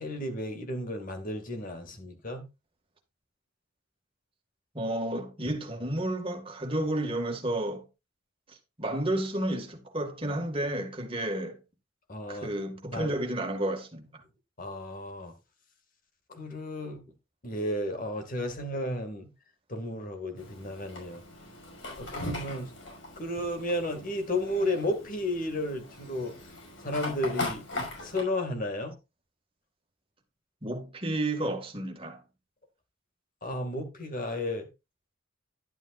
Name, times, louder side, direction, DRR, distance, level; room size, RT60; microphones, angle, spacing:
voice 1, 0.0-2.5 12.1-12.5 12.9-13.1 14.6-15.3 16.3-17.0 17.4-19.3 19.7-21.2 21.9-22.7 23.2-26.4 26.8-27.7 28.0-28.9 33.4-34.7, left 1 dB, 45° left, 2.2 m, -33 dB
voice 2, 4.7-7.8 8.8-11.6 12.3-14.2 30.6-32.2, right 1 dB, 25° right, 2.0 m, -31 dB
Fire, 20.4-28.2, left 2 dB, 75° left, 5.7 m, -39 dB
11.5 x 11.0 x 2.5 m
head